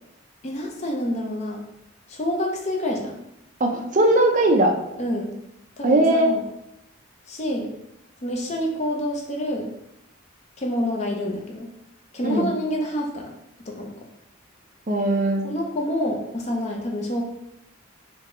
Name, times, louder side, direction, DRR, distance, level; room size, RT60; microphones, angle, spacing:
voice 1, 0.4-1.6 2.1-3.2 5.0-5.3 5.8-6.4 7.3-7.7 8.2-9.7 10.6-11.7 12.1-13.3 13.7-13.9 15.4-17.2, equal, 35° left, 1 dB, 0.5 m, -27 dB
voice 2, 3.6-4.7 5.8-6.3 12.2-12.5 14.9-15.4, right 1 dB, 40° right, 3 dB, 0.5 m, -19 dB
3.8 x 2.7 x 3.7 m, 0.83 s
head